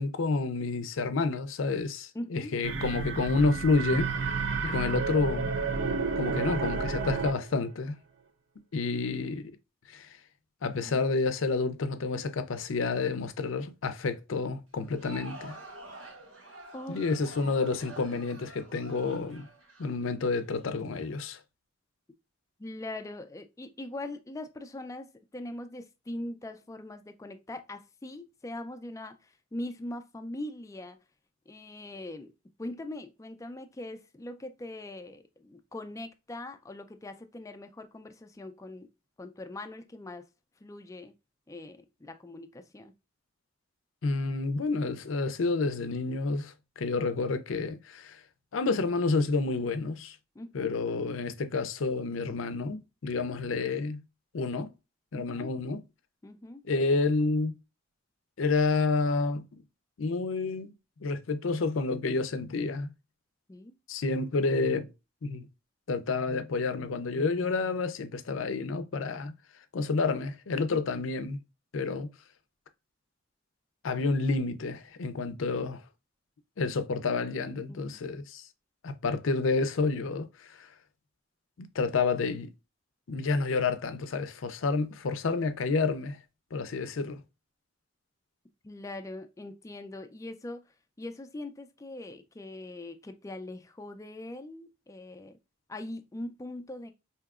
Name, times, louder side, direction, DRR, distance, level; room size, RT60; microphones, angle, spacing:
voice 1, 0.0-4.1 4.6-5.5 6.2-8.0 8.7-9.5 9.9-10.1 10.6-15.6 16.9-19.5 19.8-21.4 44.0-48.2 48.5-50.2 50.5-54.0 54.3-54.7 55.1-55.8 56.7-57.6 58.4-59.6 60.0-60.7 61.0-62.9 63.9-64.9 65.2-65.4 65.9-69.3 69.7-71.4 71.7-72.1 73.8-75.8 76.6-78.4 78.8-80.3 80.6-80.7 81.6-82.5 83.1-86.2 86.5-87.2, left 3 dB, 75° left, 0.5 m, -29 dB
voice 2, 2.1-2.5 10.6-11.0 16.7-17.0 22.6-31.0 31.5-32.3 32.6-38.9 39.2-40.3 40.6-41.1 41.5-42.9 50.4-50.8 55.1-55.5 56.2-56.6 63.5-63.8 77.7-78.1 88.6-90.6 91.0-95.4 95.7-96.9, left 1 dB, 15° left, 0.3 m, -41 dB
sound 1, 2.6-7.6, right 4 dB, 60° right, 0.5 m, -31 dB
Crowd, 14.7-20.6, right 2 dB, 80° right, 1.3 m, -48 dB
4.6 x 2.8 x 2.4 m
head